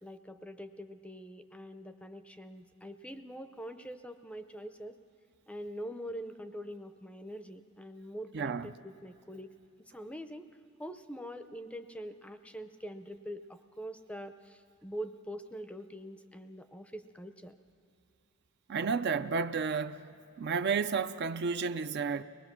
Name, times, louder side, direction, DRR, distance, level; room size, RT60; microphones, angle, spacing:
voice 1, 0.0-4.9 5.5-9.5 9.9-10.5 10.8-17.6, equal, 5° left, 0.5 m, -44 dB
voice 2, 8.3-8.7 18.7-20.1 20.4-22.2, right 5 dB, 50° right, 0.4 m, -31 dB
24.0 x 19.5 x 6.0 m
head